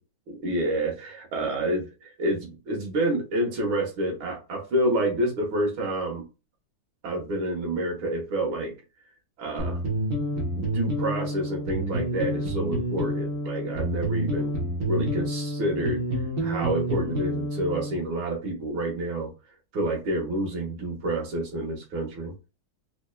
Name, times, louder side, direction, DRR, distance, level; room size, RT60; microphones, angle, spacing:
voice 1, 0.3-6.2 7.0-8.7 9.4-9.8 10.6-14.6 14.9-16.0 16.4-19.3 19.7-22.3, right 1 dB, 75° right, 1 dB, 2.1 m, -28 dB
sound 1, 9.6-18.0, equal, 50° right, 1.5 m, -28 dB
4.5 x 3.2 x 2.2 m, 0.29 s
omnidirectional pair, 2.3 m